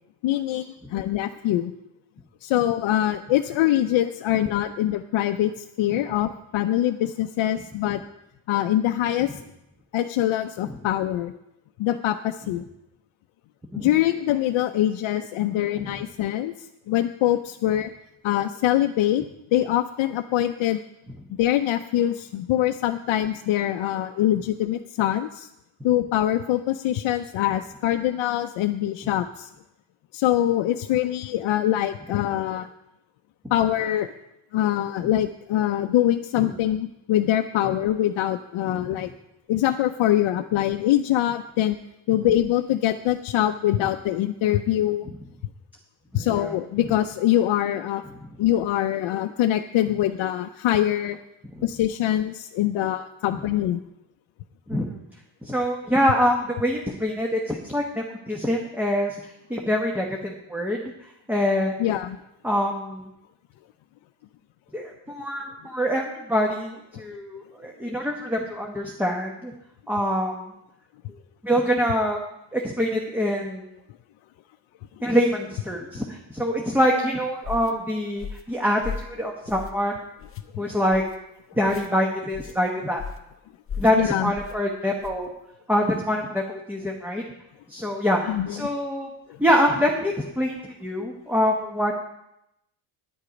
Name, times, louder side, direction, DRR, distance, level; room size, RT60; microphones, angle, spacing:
voice 1, 0.2-0.7 0.9-1.7 2.4-8.0 8.5-9.3 9.9-11.3 11.8-12.6 13.8-16.5 16.9-17.9 18.2-19.3 19.5-20.8 21.4-25.5 25.8-29.5 30.1-32.7 33.5-34.1 34.5-39.1 39.5-41.8 42.1-45.1 46.1-48.0 48.4-51.2 51.6-53.8 61.8-62.2 80.5-80.6 83.9-84.3 88.3-88.6 89.3-89.4, left 12 dB, 70° left, 6 dB, 0.6 m, -23 dB
voice 2, 46.1-46.6 51.5-51.6 54.7-55.0 55.4-61.8 62.4-63.1 64.7-69.5 69.9-70.5 71.4-72.2 72.5-73.7 75.0-80.0 80.6-81.0 81.6-83.0 83.8-85.3 85.7-87.2 87.7-89.1 89.4-91.9, equal, 5° right, 0 dB, 1.0 m, -25 dB
sound 1, 77.4-77.7 78.2-78.5 78.8-79.1 79.5-79.9 80.2-80.4 80.9-81.2 81.6-81.9 82.3-82.6 83.0-83.3 83.7-84.0 84.3-84.6 85.0-85.3, left 6 dB, 30° left, 0.8 m, -36 dB
9.7 x 9.6 x 5.1 m, 0.85 s
cardioid pair, 135°, 48 cm